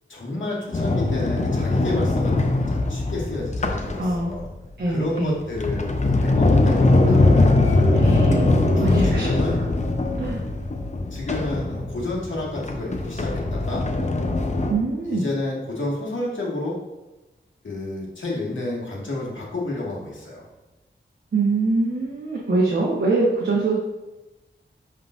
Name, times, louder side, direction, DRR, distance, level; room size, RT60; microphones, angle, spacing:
voice 1, 0.1-4.5 4.9-7.6 8.8-9.6 11.1-13.9 15.1-16.8 17.6-20.5, left 2 dB, 75° left, -4 dB, 2.0 m, -30 dB
Sliding door, 0.7-4.5 5.2-14.7, left 2 dB, 35° left, 0.7 m, -21 dB
voice 2, 4.0-4.3 4.8-5.3 7.9-9.3 10.2-10.4 14.7-15.2 21.3-23.8, right 3 dB, 55° right, -4 dB, 1.2 m, -23 dB
10.5 x 3.7 x 2.5 m, 1.1 s
wide cardioid pair, 110°, 20 cm